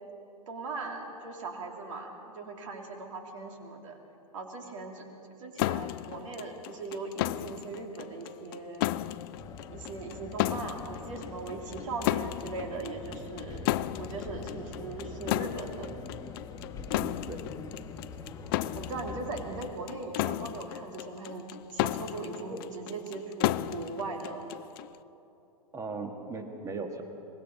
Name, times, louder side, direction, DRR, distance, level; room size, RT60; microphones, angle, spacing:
voice 1, 0.5-4.0 4.3-5.1 5.4-8.9 9.7-13.7 14.0-15.9 18.7-21.4 21.7-24.5, right 3 dB, 55° right, 3 dB, 2.8 m, -39 dB
sound 1, 5.6-25.0, left 16 dB, 40° left, 0.4 m, -34 dB
sound 2, 9.3-19.7, left 4 dB, 15° left, 1.6 m, -43 dB
voice 2, 16.9-17.4 22.5-22.6 25.7-27.0, right 3 dB, 15° right, 5 dB, 1.7 m, -38 dB
24.5 x 20.5 x 5.3 m, 2.9 s
figure-of-eight pair, 100°, 20 cm